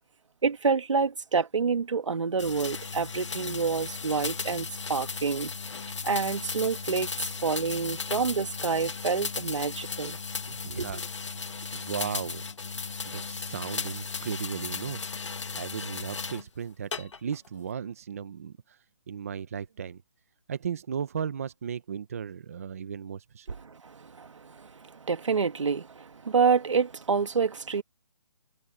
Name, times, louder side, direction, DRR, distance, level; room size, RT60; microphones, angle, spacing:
voice 1, 0.4-5.5 6.0-10.2 10.8-10.9 23.5-27.8, right 5 dB, 70° right, 2.2 m, -28 dB
sound 1, 2.4-16.4 16.9-17.5, left 5 dB, 70° left, 2.0 m, -36 dB
voice 2, 10.5-11.0 11.7-12.4 13.0-15.0 15.6-18.8 19.1-20.0 20.5-23.5, right 7 dB, 30° right, 0.8 m, -36 dB
hypercardioid pair, 175°, 16 cm